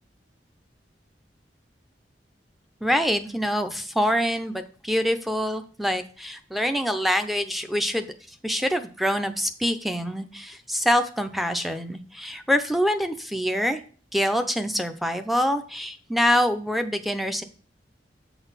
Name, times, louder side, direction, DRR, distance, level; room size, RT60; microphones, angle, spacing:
voice 1, 2.8-8.1 8.4-13.8 14.1-17.4, equal, ahead, 6 dB, 0.6 m, -25 dB
8.0 x 4.0 x 5.5 m, 0.40 s
head